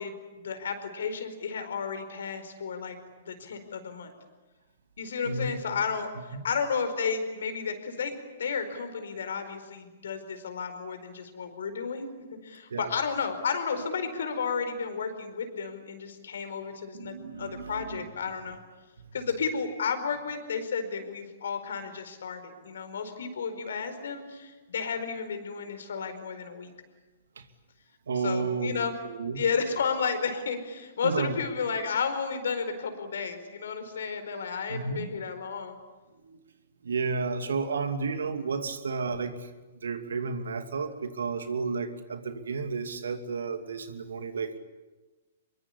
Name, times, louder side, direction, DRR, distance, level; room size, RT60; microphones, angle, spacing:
voice 1, 0.0-4.1 5.0-12.1 12.4-18.6 19.1-26.7 28.2-28.9 29.4-35.8, left 5 dB, 70° left, 8 dB, 4.7 m, -32 dB
voice 2, 5.3-5.6 6.3-6.5 12.7-12.9 16.9-18.1 19.0-19.1 27.4-27.5 28.1-28.8 29.0-29.4 31.0-31.4 34.7-35.1 36.2-36.4 36.8-39.5 39.8-44.6, right 4 dB, 75° right, 8 dB, 2.7 m, -32 dB
24.5 x 23.0 x 10.0 m, 1.2 s
hypercardioid pair, 115°, 0 cm